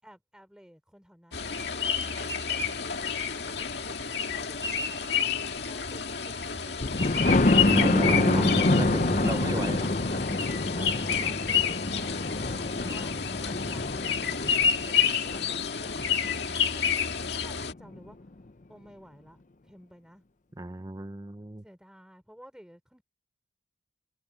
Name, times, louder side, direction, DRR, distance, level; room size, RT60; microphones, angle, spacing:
voice 1, 0.0-3.1 3.5-5.0 5.6-7.2 7.9-8.9 9.3-9.8 10.4-14.5 14.8-16.1 16.7-18.2 18.7-20.2 21.6-23.0, equal, 5° right, 4.0 m, -53 dB
sound 1, 1.3-17.7, left 7 dB, 60° left, 2.2 m, -29 dB
Thunder, 6.8-16.5 17.1-17.2 17.6-17.7 18.0-18.1, left 2 dB, 40° left, 0.7 m, -27 dB
voice 2, 7.7-8.4 8.8-9.9 20.6-21.6, right 1 dB, 20° right, 0.7 m, -35 dB
Bass guitar, 7.7-13.9, right 1 dB, 40° right, 1.7 m, -35 dB
head